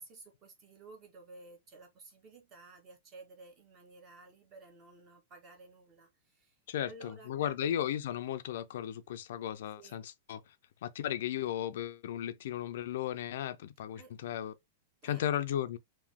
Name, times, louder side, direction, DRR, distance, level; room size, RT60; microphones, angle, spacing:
voice 1, 0.0-6.6 6.8-7.7 9.8-10.0 13.9-14.1 15.0-15.4, right 2 dB, 25° right, 1.3 m, -54 dB
voice 2, 6.7-10.4 10.8-14.5 15.0-15.8, left 11 dB, 65° left, 0.4 m, -35 dB
3.6 x 2.6 x 3.5 m
supercardioid pair, 160°, 0 cm